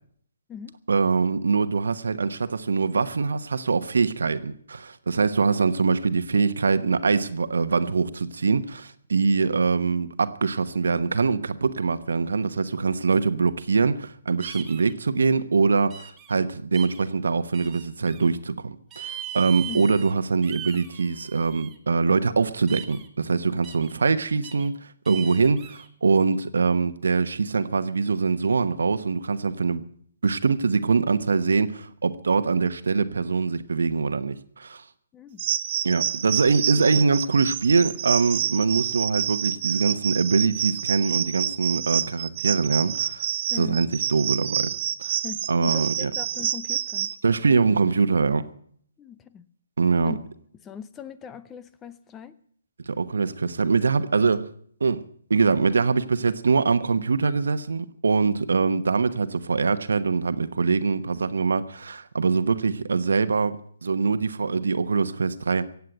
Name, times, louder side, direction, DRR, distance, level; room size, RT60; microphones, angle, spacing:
voice 1, 0.9-24.7 25.1-29.8 30.2-34.8 35.8-43.3 43.6-44.7 45.0-45.2 45.5-46.1 47.2-48.4 49.8-50.1 52.9-54.5 54.8-55.0 55.3-65.6, right 4 dB, 80° right, 1.1 m, -23 dB
sound 1, 14.4-14.9 15.9-16.3 16.7-17.0 17.5-18.3 18.9-20.1 20.4-21.7 22.7-23.1 23.6-23.9 24.4-24.7 25.0-25.9, right 10 dB, 15° right, 1.7 m, -39 dB
sound 2, 35.4-47.2, right 10 dB, 45° right, 0.9 m, -28 dB
voice 2, 43.5-43.9 45.2-47.1 49.0-49.5 50.0-50.2 50.6-52.4, left 8 dB, 15° left, 0.7 m, -39 dB
16.0 x 8.4 x 9.2 m
hypercardioid pair, 150°, 0 cm